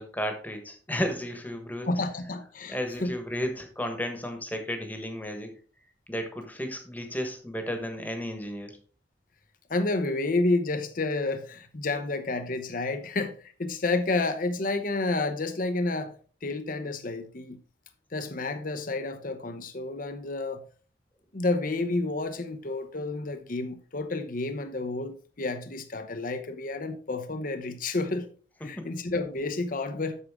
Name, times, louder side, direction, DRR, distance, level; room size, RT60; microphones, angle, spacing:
voice 1, 0.0-2.0 2.7-5.5 6.1-8.8 28.6-28.9, equal, 10° left, 1.3 m, -33 dB
voice 2, 1.9-3.2 9.7-16.1 16.4-17.6 18.1-20.6 21.3-28.3 28.6-30.2, left 2 dB, 45° left, 0.8 m, -30 dB
8.2 x 6.5 x 3.6 m
head